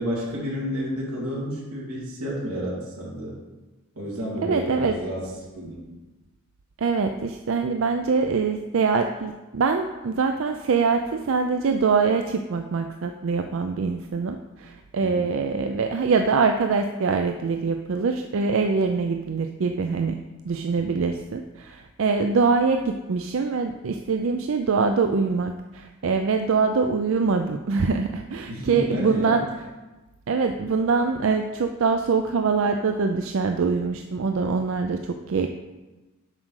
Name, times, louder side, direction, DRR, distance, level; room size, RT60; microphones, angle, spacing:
voice 1, 0.0-3.4 4.0-5.3 5.6-5.9 15.0-15.3 20.7-21.1 28.5-29.4, equal, 90° right, -5 dB, 2.5 m, -31 dB
voice 2, 4.4-5.0 6.8-20.1 20.4-29.5 30.3-35.5, right 4 dB, 65° right, 6 dB, 0.4 m, -24 dB
7.4 x 5.0 x 6.3 m, 1.2 s
head